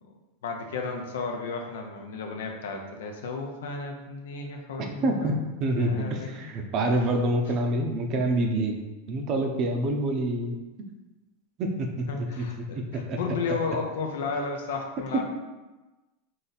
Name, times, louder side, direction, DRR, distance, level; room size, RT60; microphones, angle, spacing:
voice 1, 0.4-5.4 5.8-6.5 7.0-7.1 12.1-15.2, left 4 dB, 85° left, 3 dB, 0.7 m, -33 dB
voice 2, 5.0-8.8 9.1-10.6 11.6-12.1 12.4-12.5 12.8-13.2, right 1 dB, 40° right, 3 dB, 0.6 m, -26 dB
4.2 x 2.7 x 4.1 m, 1.1 s
supercardioid pair, 140°, 0 cm